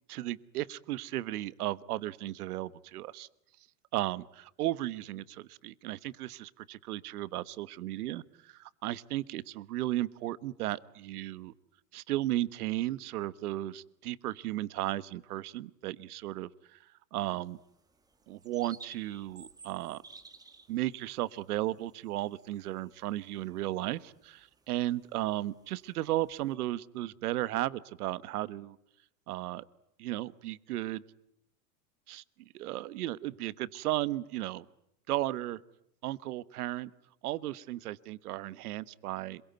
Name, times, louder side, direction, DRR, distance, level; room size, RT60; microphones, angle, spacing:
voice 1, 0.1-3.3 3.9-4.2 4.6-11.5 11.9-16.8 17.1-17.6 18.3-20.0 20.7-28.8 29.3-29.6 30.0-31.0 32.1-32.2 32.5-34.6 35.1-35.6 36.0-36.9 37.2-39.4, right 15 dB, 65° right, 18 dB, 1.3 m, -35 dB
sound 1, 17.2-26.5, right 4 dB, 10° right, 1.6 m, -57 dB
27.0 x 23.0 x 9.3 m, 0.78 s
supercardioid pair, 145°, 48 cm